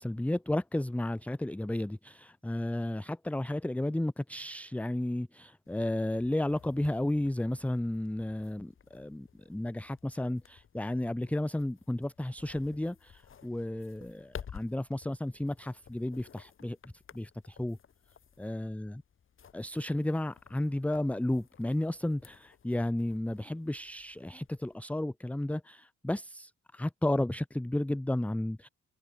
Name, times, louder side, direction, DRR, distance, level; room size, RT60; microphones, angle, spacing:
voice 1, 0.0-17.8 18.4-19.0 19.5-28.7, left 1 dB, 5° left, 0.9 m, -33 dB
sound 1, 5.6-24.8, left 7 dB, 45° left, 1.4 m, -54 dB
cardioid pair, 90°, 30 cm